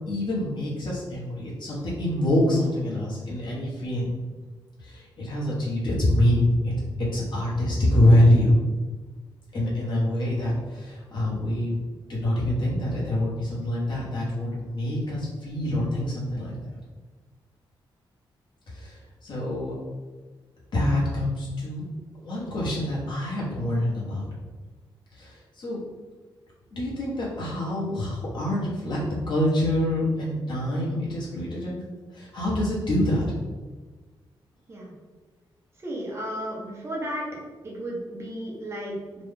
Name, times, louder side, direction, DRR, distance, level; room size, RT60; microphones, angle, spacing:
voice 1, 0.1-4.2 4.8-8.6 9.5-11.8 12.1-16.5 18.7-19.7 20.7-21.8 22.2-24.3 25.2-25.8 26.7-29.0 29.3-31.8 32.1-33.2, left 1 dB, 60° left, -6 dB, 1.3 m, -25 dB
voice 2, 35.8-37.3 37.6-39.2, equal, 30° right, -4 dB, 0.9 m, -33 dB
3.1 x 2.5 x 3.7 m, 1.3 s
wide cardioid pair, 155°, 9 cm